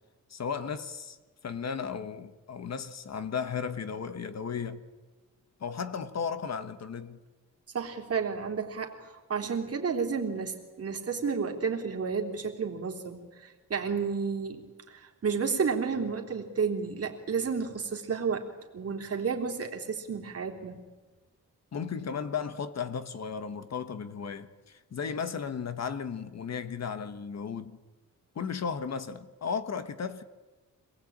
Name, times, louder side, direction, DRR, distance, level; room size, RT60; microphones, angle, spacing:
voice 1, 0.3-1.2 1.4-4.8 5.6-7.2 21.7-27.8 28.3-30.2, left 6 dB, 55° left, 1.3 m, -35 dB
voice 2, 7.7-18.5 18.7-20.8, right 5 dB, 50° right, 3.4 m, -31 dB
26.0 x 20.0 x 8.8 m
wide cardioid pair, 165°, 31 cm